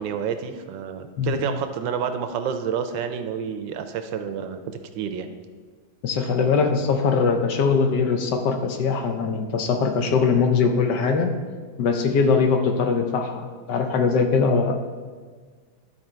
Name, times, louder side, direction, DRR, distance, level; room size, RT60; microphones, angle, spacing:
voice 1, 0.0-5.3, right 7 dB, 75° right, 8 dB, 1.2 m, -29 dB
voice 2, 6.0-11.3 11.8-14.8, left 5 dB, 70° left, 5 dB, 1.2 m, -21 dB
12.0 x 4.2 x 4.4 m, 1.5 s
omnidirectional pair, 2.2 m